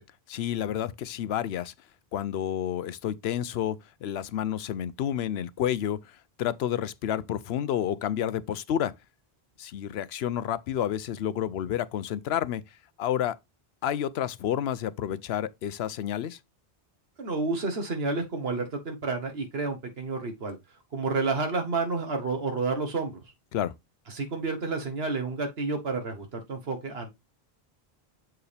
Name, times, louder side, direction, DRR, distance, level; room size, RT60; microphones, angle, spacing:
voice 1, 0.3-1.7 2.1-8.9 9.6-12.6 13.0-13.4 13.8-16.4 23.5-23.7, left 10 dB, 85° left, 0.8 m, -30 dB
voice 2, 17.2-20.6 20.9-23.2 24.1-27.2, right 3 dB, 75° right, 1.4 m, -30 dB
7.5 x 4.6 x 3.3 m
omnidirectional pair, 1.0 m